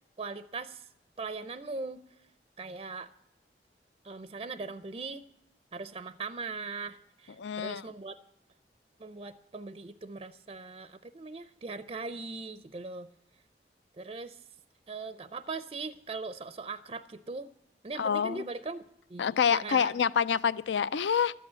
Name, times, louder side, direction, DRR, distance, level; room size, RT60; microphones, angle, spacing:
voice 1, 0.2-0.8 1.2-2.0 2.6-3.1 4.0-5.3 5.7-8.1 9.0-13.1 14.0-14.4 14.9-17.5 17.8-18.8 19.1-19.3 19.5-19.9, right 4 dB, 30° right, 0.4 m, -40 dB
voice 2, 7.4-7.9 18.0-18.4 19.2-21.3, left 7 dB, 90° left, 0.4 m, -27 dB
13.0 x 8.6 x 8.7 m
head